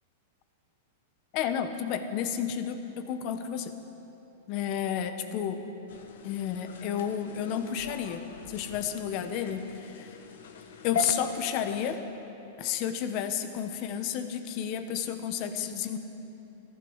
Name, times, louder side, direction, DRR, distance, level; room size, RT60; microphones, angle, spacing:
voice 1, 1.3-3.7 4.5-5.6 6.2-10.1 10.8-12.0 12.6-16.0, left 9 dB, 45° left, 9 dB, 1.1 m, -31 dB
sound 1, 5.9-12.0, left 4 dB, 75° left, 1.3 m, -40 dB
14.5 x 12.0 x 6.4 m, 3.0 s
hypercardioid pair, 135°, 0 cm